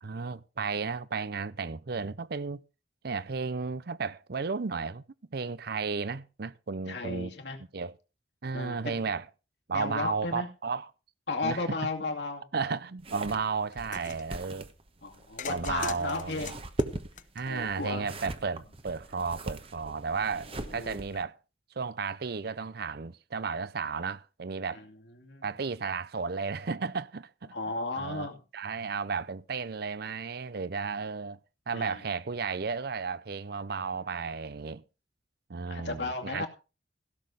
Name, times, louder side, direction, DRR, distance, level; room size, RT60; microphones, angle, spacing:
voice 1, 0.0-2.6 3.0-5.0 5.3-7.3 7.7-7.9 8.4-9.2 9.7-10.9 11.4-11.8 12.5-14.7 15.5-16.5 17.3-21.4 21.8-24.8 25.4-27.5 28.0-28.3 28.5-31.4 31.7-34.8 35.5-36.5, right 5 dB, 55° right, 0.6 m, -33 dB
voice 2, 6.9-7.6 8.5-9.1 9.7-10.5 11.3-12.7 15.0-16.6 17.5-18.1 20.7-21.0 24.7-25.5 27.5-28.4 31.7-32.0 35.6-36.5, left 3 dB, 65° left, 2.4 m, -35 dB
sound 1, 13.0-21.2, right 1 dB, 30° right, 1.1 m, -40 dB
sound 2, 13.7-14.2 15.4-17.9, left 7 dB, 45° left, 0.8 m, -42 dB
16.5 x 6.5 x 5.2 m
head